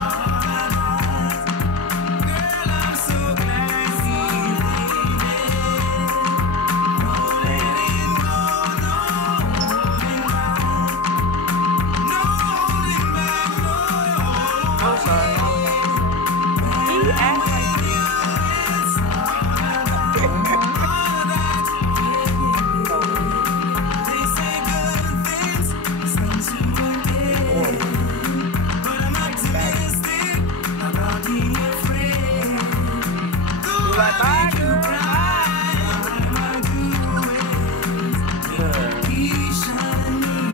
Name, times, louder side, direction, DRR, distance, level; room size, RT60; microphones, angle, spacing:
voice 1, 0.0-1.3 2.0-21.7 21.9-25.0 25.3-25.5 26.8-27.8 28.2-28.4 28.9-29.3 29.6-29.8 30.1-30.4 31.0-31.7 32.0-32.7 33.7-34.5 34.9-36.0 36.3-36.5 36.8-37.4 37.9-38.0 39.2-39.4 39.7-40.3, left 4 dB, 80° left, 0.9 m, -20 dB
voice 2, 6.9-7.9 9.6-9.8 20.1-20.8 22.9-23.4 27.3-28.0 29.2-29.9 38.5-39.2, right 4 dB, 30° right, 0.9 m, -30 dB
voice 3, 14.8-15.7 16.0-16.2 16.9-18.6 19.3-19.4 20.1-20.9 32.3-33.4 33.8-35.5 35.8-36.9 37.2-37.5, right 7 dB, 70° right, 0.5 m, -25 dB
16.5 x 7.9 x 4.2 m
head